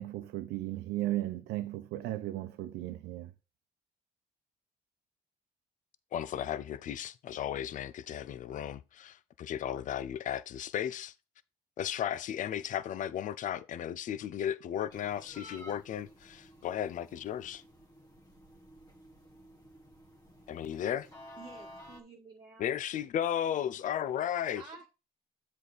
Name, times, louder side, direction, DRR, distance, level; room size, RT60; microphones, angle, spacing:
voice 1, 0.0-3.3, right 15 dB, 85° right, 0.8 m, -35 dB
voice 2, 6.1-11.1 11.8-17.6 20.5-21.1 22.6-24.6, left 10 dB, 50° left, 0.5 m, -35 dB
sound 1, 14.9-22.0, equal, 20° left, 1.5 m, -53 dB
voice 3, 21.4-22.8 24.5-24.9, right 4 dB, 30° right, 1.5 m, -51 dB
7.8 x 5.0 x 4.0 m
cardioid pair, 110°, 17 cm